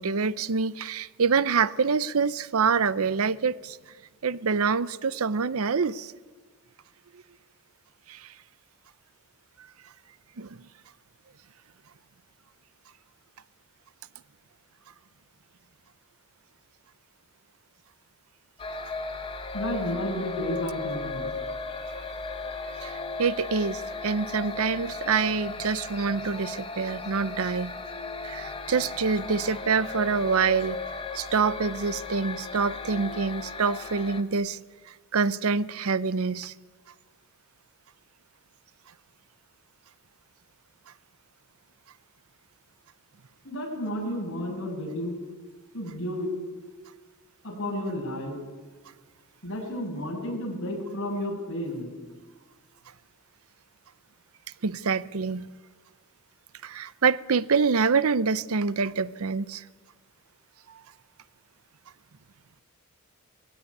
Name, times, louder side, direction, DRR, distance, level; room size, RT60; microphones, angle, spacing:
voice 1, 0.0-3.8 4.2-6.1 7.1-7.2 8.1-8.3 10.4-10.7 22.8-27.7 28.2-34.6 34.9-36.5 54.6-55.5 56.6-59.6, right 5 dB, 70° right, 0.6 m, -26 dB
sound 1, 18.6-34.2, left 3 dB, 25° left, 1.2 m, -36 dB
voice 2, 19.5-21.4 43.4-45.2 45.7-46.3 47.4-48.4 49.4-52.0, left 1 dB, 60° left, 7.1 m, -32 dB
19.0 x 16.5 x 9.7 m
head